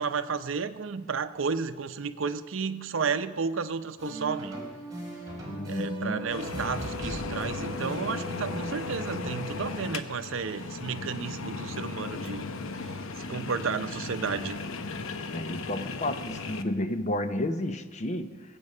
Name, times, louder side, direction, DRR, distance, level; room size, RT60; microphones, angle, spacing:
voice 1, 0.0-4.6 5.7-12.5 12.8-12.9 13.2-14.6, right 5 dB, 70° right, 11 dB, 0.6 m, -32 dB
sound 1, 4.0-9.7, right 1 dB, 20° right, 4.1 m, -39 dB
voice 2, 5.5-6.2 15.3-18.4, left 1 dB, 35° left, 9 dB, 0.8 m, -31 dB
sound 2, 6.3-16.6, left 4 dB, 80° left, 0.8 m, -36 dB
20.0 x 8.1 x 5.4 m, 1.4 s
head